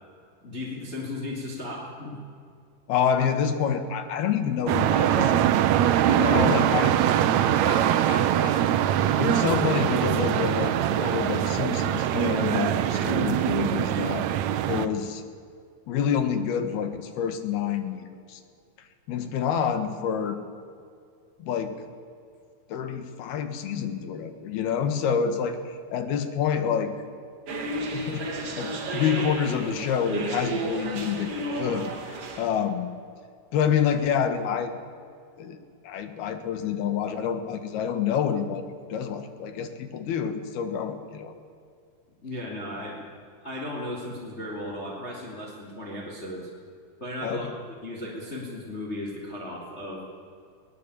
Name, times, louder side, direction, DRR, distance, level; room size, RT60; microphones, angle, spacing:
voice 1, 0.4-2.2 42.2-43.0 43.4-46.5 47.0-50.0, left 1 dB, 20° left, -2 dB, 3.5 m, -35 dB
voice 2, 2.9-5.5 6.1-7.0 7.7-8.6 9.2-14.3 14.7-15.2 15.9-18.4 19.1-20.4 21.4-21.8 22.7-26.9 27.9-28.2 28.6-32.9 33.5-34.7 35.4-35.6 35.8-41.3 47.2-47.5, left 7 dB, 85° left, 9 dB, 3.6 m, -28 dB
sound 1, 4.7-14.9, right 10 dB, 80° right, 1.6 m, -23 dB
sound 2, 27.5-32.5, right 2 dB, 40° right, 3.0 m, -32 dB
21.5 x 19.0 x 8.5 m, 2.3 s
omnidirectional pair, 4.4 m